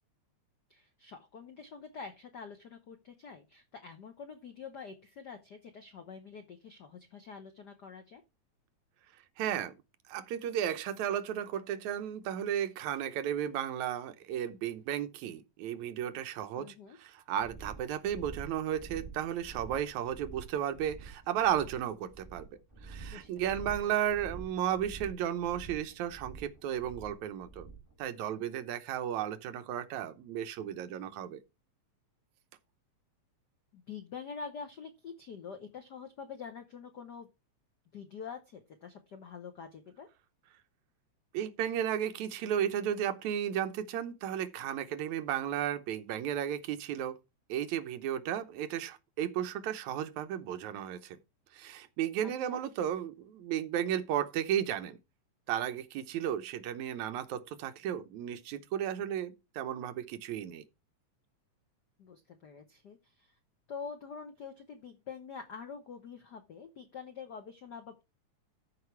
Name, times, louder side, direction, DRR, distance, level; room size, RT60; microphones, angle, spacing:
voice 1, 0.7-8.2 16.5-17.0 23.1-23.9 33.7-37.3 37.9-40.1 52.2-52.6 62.0-63.3 63.7-68.0, left 5 dB, 80° left, 0.9 m, -46 dB
voice 2, 9.4-9.7 10.1-22.5 22.8-27.7 28.0-31.4 41.3-47.2 47.5-51.2 51.5-55.0 55.5-60.6, right 10 dB, 75° right, 2.2 m, -34 dB
sound 1, 17.4-27.9, right 5 dB, 5° right, 3.6 m, -48 dB
13.0 x 5.0 x 4.6 m
omnidirectional pair, 3.3 m